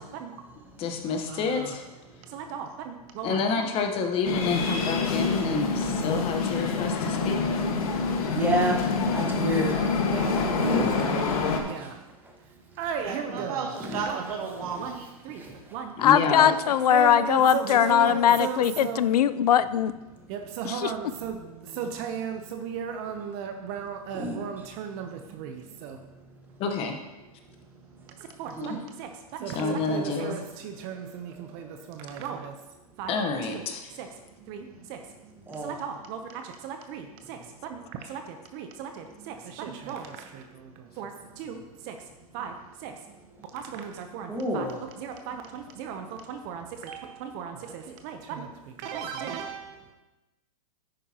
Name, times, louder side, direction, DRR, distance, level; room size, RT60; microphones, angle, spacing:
voice 1, 0.0-0.3 1.3-1.8 2.3-3.7 9.7-11.3 11.6-12.0 12.8-13.7 14.0-14.2 14.8-15.0 15.2-15.4 15.7-15.9 16.2-16.4 16.6-19.0 20.3-26.0 28.2-32.6 33.0-33.1 33.4-33.7 34.0-34.1 34.5-35.0 35.6-37.8 38.0-42.0 42.3-42.9 43.5-44.7 45.0-48.5 48.8-49.8, right 7 dB, 40° right, 5 dB, 0.8 m, -36 dB
voice 2, 0.8-1.8 3.2-7.5 16.0-16.5 26.6-27.0 29.5-30.4 33.1-33.9, left 4 dB, 30° left, 4 dB, 1.1 m, -29 dB
voice 3, 2.1-2.4 8.3-9.8 10.6-11.0 11.7-11.9 12.2-12.3 13.3-13.4 13.8-14.0 15.4-15.8 16.3-16.5 21.4-21.5 24.1-24.4 25.6-25.7 28.5-28.8 29.9-30.1 31.4-32.0 35.5-35.7 44.3-44.8, right 1 dB, 10° right, 0 dB, 1.5 m, -31 dB
sound 1, 4.2-11.6, left 4 dB, 65° left, 1.6 m, -26 dB
voice 4, 13.0-15.1 15.4-15.6 27.7-28.4 34.7-34.9, right 5 dB, 70° right, 1 dB, 2.2 m, -36 dB
voice 5, 16.0-19.9 20.6-20.9, left 10 dB, 85° left, 14 dB, 0.5 m, -21 dB
10.5 x 9.0 x 2.9 m, 1.1 s
hypercardioid pair, 140°, 19 cm